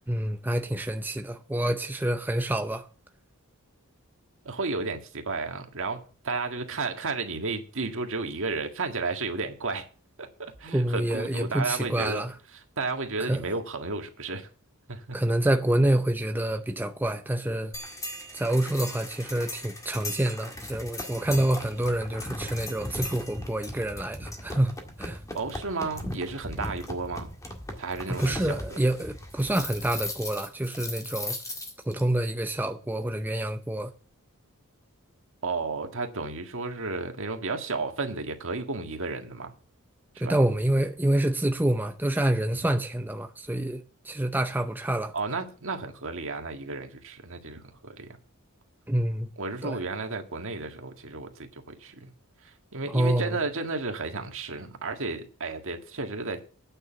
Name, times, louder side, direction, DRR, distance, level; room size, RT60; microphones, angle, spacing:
voice 1, 0.1-2.9 10.7-12.3 13.2-13.4 15.1-17.7 18.3-25.2 28.2-31.4 31.9-33.9 40.2-45.1 48.9-49.3 49.6-49.8 52.8-53.4, right 1 dB, 10° right, 0.6 m, -27 dB
voice 2, 4.4-9.9 10.2-12.2 12.5-14.5 14.9-15.2 25.3-27.3 27.8-28.8 35.4-39.5 40.1-40.4 42.5-42.6 45.1-48.2 49.4-52.1 52.4-56.4, right 3 dB, 60° right, 1.8 m, -33 dB
sound 1, 17.7-32.0, left 1 dB, 15° left, 1.8 m, -38 dB
9.4 x 6.7 x 7.1 m
head